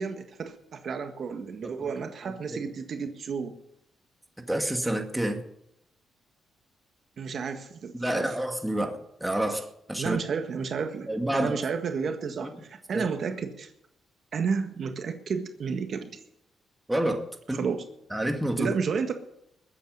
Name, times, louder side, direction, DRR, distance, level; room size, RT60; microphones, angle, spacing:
voice 1, 0.0-3.5 7.2-8.3 10.0-13.7 14.3-16.1 17.5-17.8 18.6-19.1, right 5 dB, 60° right, 6 dB, 1.6 m, -31 dB
voice 2, 4.5-5.4 8.0-10.2 11.1-11.6 12.4-12.5 12.9-13.1 16.9-17.6 18.1-18.7, right 1 dB, 5° right, 4 dB, 2.2 m, -28 dB
21.0 x 8.7 x 5.5 m, 0.78 s
cardioid pair, 90°, 0 cm